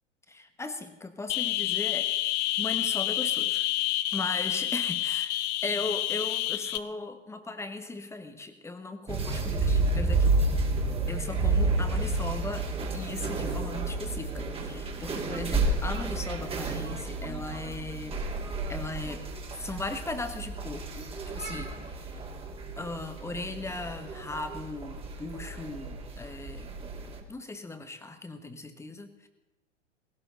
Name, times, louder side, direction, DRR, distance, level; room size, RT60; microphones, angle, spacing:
voice 1, 0.3-2.1 2.6-3.7 4.1-5.3 5.6-10.4 11.1-18.2 18.7-19.3 19.5-21.1 21.3-22.0 22.8-26.7 27.3-29.3, left 2 dB, 5° left, 8 dB, 1.3 m, -37 dB
sound 1, 1.3-6.8, left 15 dB, 25° left, 0.6 m, -29 dB
sound 2, 9.1-27.2, right 3 dB, 15° right, 2.3 m, -31 dB
19.0 x 17.0 x 4.0 m, 1.1 s
figure-of-eight pair, 105°, 37 cm